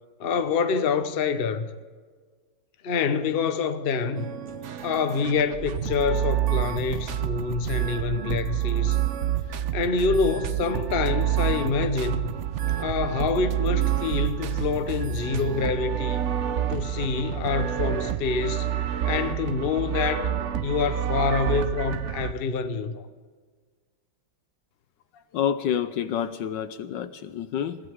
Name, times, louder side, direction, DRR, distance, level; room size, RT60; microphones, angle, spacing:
voice 1, 0.2-1.7 2.8-4.3 4.8-9.0 9.7-12.3 12.8-16.2 16.7-18.7 19.0-20.4 20.6-23.1, left 5 dB, 40° left, 0.8 m, -26 dB
sound 1, 4.2-22.3, right 11 dB, 75° right, 0.6 m, -28 dB
voice 2, 25.3-27.8, left 9 dB, 70° left, 1.3 m, -28 dB
21.5 x 16.0 x 3.6 m
omnidirectional pair, 2.2 m